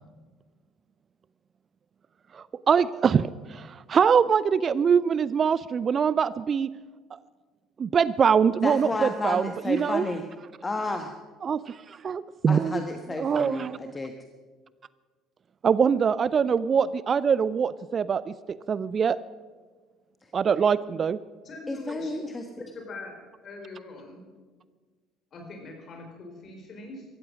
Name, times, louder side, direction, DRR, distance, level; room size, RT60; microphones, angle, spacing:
voice 1, 2.3-6.7 7.1-7.2 7.8-10.1 11.4-12.8 13.2-13.8 15.6-19.2 20.3-21.2, right 7 dB, 40° right, 18 dB, 0.4 m, -23 dB
voice 2, 8.6-10.3 10.6-11.1 12.5-14.1 21.7-22.6, left 2 dB, 20° left, 5 dB, 1.3 m, -31 dB
voice 3, 21.4-22.1 22.7-23.2 23.4-24.3 25.3-27.1, left 3 dB, 45° left, 3 dB, 4.6 m, -42 dB
16.0 x 14.5 x 6.2 m, 1.4 s
figure-of-eight pair, 55°, 0 cm